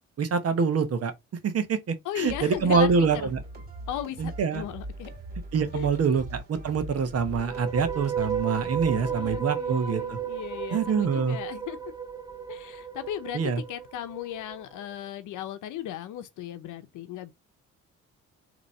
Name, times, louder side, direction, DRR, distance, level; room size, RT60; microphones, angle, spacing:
voice 1, 0.2-1.1 1.4-3.4 4.2-4.6 5.5-10.2 10.7-11.4 13.3-13.6, right 5 dB, 55° right, 1.0 m, -25 dB
voice 2, 2.0-3.3 3.9-5.1 5.7-6.2 8.8-11.8 12.5-17.3, left 11 dB, 85° left, 0.8 m, -36 dB
sound 1, 2.3-9.4, right 1 dB, 30° right, 2.5 m, -41 dB
sound 2, 7.4-14.6, right 8 dB, 15° right, 0.6 m, -33 dB
4.0 x 3.0 x 4.2 m
cardioid pair, 90°, 30 cm